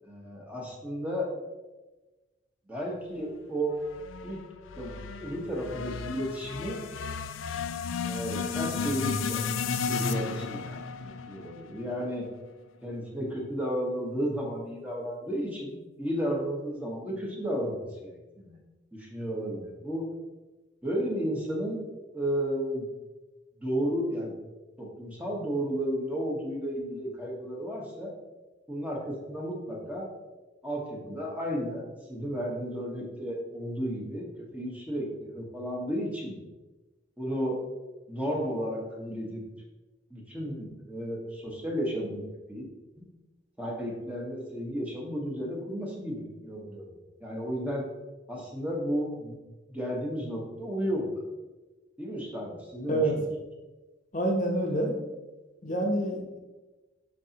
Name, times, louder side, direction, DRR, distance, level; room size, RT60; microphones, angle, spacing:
voice 1, 0.0-1.3 2.7-3.8 4.2-4.4 4.8-6.8 8.0-9.4 9.9-12.3 12.8-18.6 18.9-20.0 20.8-21.8 22.1-22.9 23.6-24.3 24.8-28.1 28.7-30.1 30.6-36.4 37.2-37.6 38.1-39.4 40.1-42.2 42.5-42.6 43.0-43.1 43.6-47.9 48.3-49.4 49.7-51.2 52.0-53.3, equal, 5° right, -2 dB, 1.2 m, -33 dB
sound 1, 3.8-12.2, left 5 dB, 85° left, 0.5 m, -34 dB
voice 2, 54.1-55.0 55.6-56.4, right 1 dB, 40° left, 0 dB, 0.9 m, -27 dB
11.5 x 4.1 x 2.9 m, 1.2 s
head